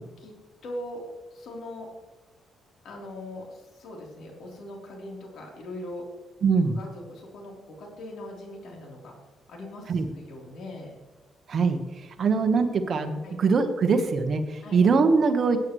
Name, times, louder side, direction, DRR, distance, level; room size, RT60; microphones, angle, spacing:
voice 1, 0.6-1.0 1.3-1.9 2.8-6.0 6.7-9.2 9.5-11.0 12.2-12.3 13.2-13.4 14.6-14.8, left 1 dB, 70° left, -1 dB, 3.5 m, -40 dB
voice 2, 6.4-6.8 9.9-10.1 11.5-11.8 12.2-15.6, right 4 dB, 50° right, 7 dB, 1.2 m, -22 dB
17.5 x 9.2 x 3.1 m, 1.2 s
cardioid pair, 120°, 0 cm